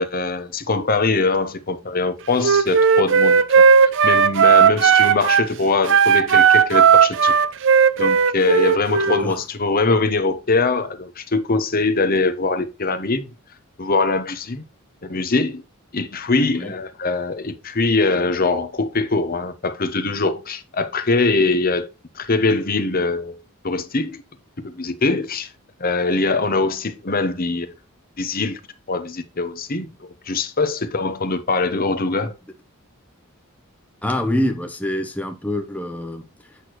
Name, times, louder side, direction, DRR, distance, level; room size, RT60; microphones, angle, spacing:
voice 1, 0.0-7.3 8.0-13.2 13.8-14.6 15.0-15.6 15.9-21.9 22.1-23.4 23.6-24.2 24.6-25.5 25.8-27.7 28.2-28.6 28.9-32.3, left 3 dB, 40° left, 1.0 m, -22 dB
Wind instrument woodwind instrument, 2.4-5.5 5.8-9.3, right 6 dB, 60° right, 0.5 m, -15 dB
voice 2, 9.1-9.4 16.6-16.7 34.0-36.6, left 1 dB, 5° left, 0.9 m, -26 dB
8.3 x 6.4 x 3.1 m
head